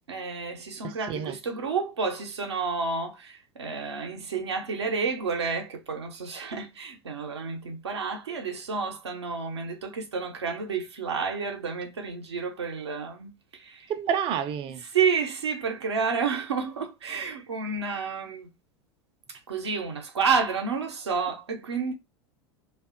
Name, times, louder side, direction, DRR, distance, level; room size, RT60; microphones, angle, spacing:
voice 1, 0.1-13.9 14.9-18.5 19.3-21.9, right 5 dB, 85° right, 0.6 m, -30 dB
voice 2, 0.8-1.4 13.9-14.8, right 8 dB, 40° right, 0.5 m, -29 dB
2.6 x 2.3 x 2.4 m
figure-of-eight pair, 85°, 14 cm